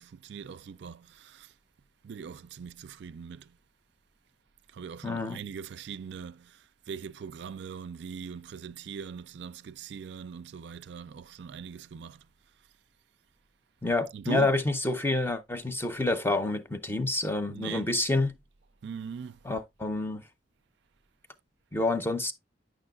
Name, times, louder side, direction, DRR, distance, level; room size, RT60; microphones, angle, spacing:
voice 1, 0.0-1.5 2.0-3.6 4.7-12.2 14.1-14.5 17.5-17.9 18.8-19.4, right 6 dB, 60° right, 0.4 m, -40 dB
voice 2, 5.0-5.4 13.8-18.3 19.5-20.2 21.7-22.3, left 2 dB, 10° left, 0.6 m, -28 dB
9.7 x 6.1 x 2.3 m
head